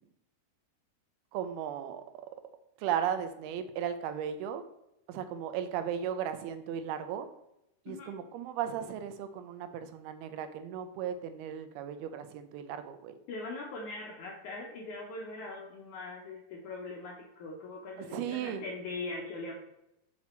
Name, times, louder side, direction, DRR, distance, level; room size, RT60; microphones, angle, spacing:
voice 1, 1.3-2.0 2.8-4.6 5.1-7.3 7.9-13.1 18.0-18.6, right 9 dB, 80° right, 9 dB, 2.5 m, -36 dB
voice 2, 13.3-19.5, left 3 dB, 75° left, -1 dB, 1.8 m, -41 dB
6.0 x 5.7 x 4.3 m, 0.85 s
omnidirectional pair, 4.5 m